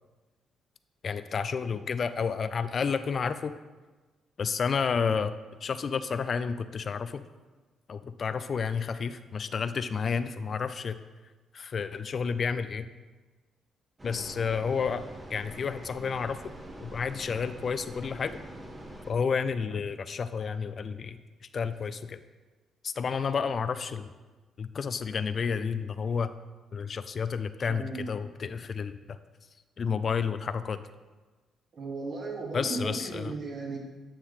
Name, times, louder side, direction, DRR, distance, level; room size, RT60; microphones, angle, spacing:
voice 1, 1.0-3.5 4.4-5.3 5.6-7.2 7.9-11.0 11.5-12.9 14.0-15.0 15.3-16.4 16.8-18.4 19.1-21.2 21.5-22.2 22.8-24.1 24.6-26.3 26.7-29.2 29.8-30.8 32.5-33.3, left 6 dB, 45° left, 12 dB, 0.4 m, -30 dB
sound 1, 14.0-19.1, right 1 dB, 20° right, 1.4 m, -44 dB
voice 2, 27.7-28.1 31.7-33.8, right 3 dB, 50° right, -3 dB, 2.6 m, -36 dB
10.0 x 6.4 x 3.7 m, 1.3 s
cardioid pair, 90°, 0 cm